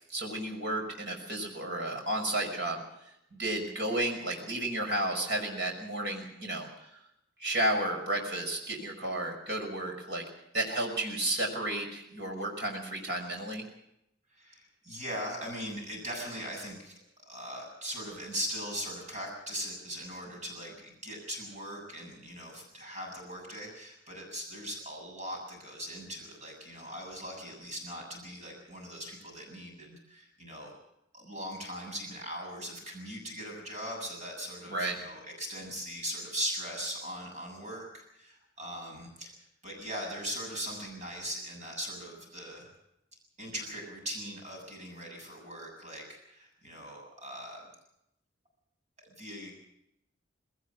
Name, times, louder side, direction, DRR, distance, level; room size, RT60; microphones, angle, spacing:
voice 1, 0.1-2.8 3.3-6.9 7.4-10.2 10.5-13.6 34.7-35.0, right 1 dB, 65° right, 2 dB, 6.0 m, -32 dB
voice 2, 14.3-30.7 31.1-39.3 39.6-42.7 43.4-47.6 49.1-49.5, equal, 40° right, 1 dB, 7.6 m, -40 dB
20.0 x 18.5 x 7.3 m, 0.81 s
head